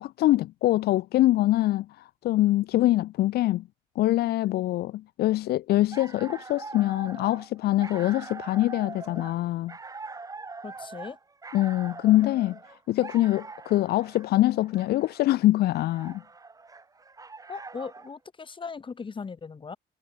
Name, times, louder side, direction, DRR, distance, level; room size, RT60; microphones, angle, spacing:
voice 1, 0.0-3.6 4.0-9.7 11.5-12.6 12.9-16.2, left 15 dB, 70° left, 0.8 m, -24 dB
sound 1, 5.7-18.1, right 3 dB, 20° right, 3.1 m, -43 dB
voice 2, 10.6-11.2 17.5-19.8, left 5 dB, 30° left, 7.2 m, -38 dB
cardioid pair, 110°, 17 cm